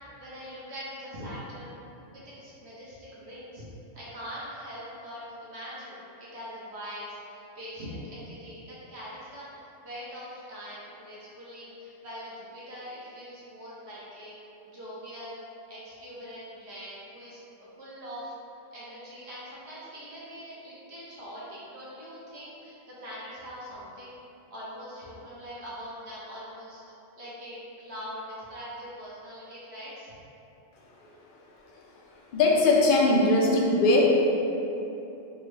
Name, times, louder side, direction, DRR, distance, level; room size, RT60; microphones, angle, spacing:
voice 1, 0.2-1.8 2.1-3.7 3.9-9.4 9.8-14.3 14.7-15.4 15.7-17.4 17.8-18.3 18.7-24.2 24.5-26.8 27.2-30.1, equal, 60° right, -8 dB, 1.0 m, -42 dB
voice 2, 32.3-34.1, left 2 dB, 60° left, -2 dB, 0.5 m, -20 dB
3.5 x 2.0 x 3.2 m, 2.9 s
omnidirectional pair, 1.3 m